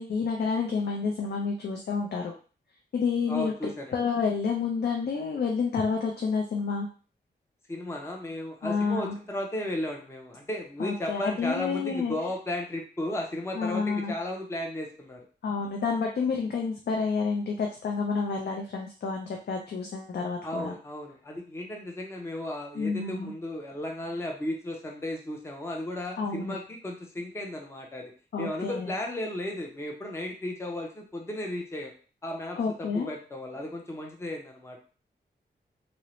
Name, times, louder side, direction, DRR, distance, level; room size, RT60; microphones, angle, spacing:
voice 1, 0.0-2.3 2.9-3.5 3.9-6.9 8.6-9.1 10.8-12.1 13.6-14.1 15.4-20.7 22.8-23.3 26.2-26.5 28.3-28.9 32.6-33.1, left 5 dB, 60° left, 1 dB, 0.4 m, -29 dB
voice 2, 3.3-4.0 7.7-15.2 20.4-28.1 28.4-31.9 32.2-34.8, left 1 dB, 15° left, 0 dB, 0.5 m, -35 dB
2.5 x 2.0 x 2.9 m, 0.38 s
wide cardioid pair, 125°, 19 cm